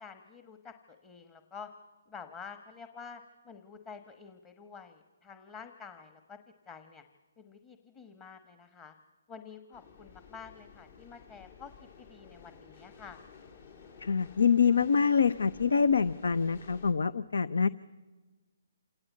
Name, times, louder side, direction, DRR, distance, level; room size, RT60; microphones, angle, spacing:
voice 1, 0.0-1.7 2.1-6.4 6.7-7.0 7.4-8.9 9.3-13.2, left 6 dB, 20° left, 7 dB, 1.3 m, -49 dB
sound 1, 9.7-16.9, left 6 dB, 60° left, 3.8 m, -53 dB
voice 2, 14.0-17.7, left 6 dB, 85° left, 17 dB, 0.7 m, -25 dB
27.0 x 18.5 x 8.4 m, 1.3 s
hypercardioid pair, 150°, 0 cm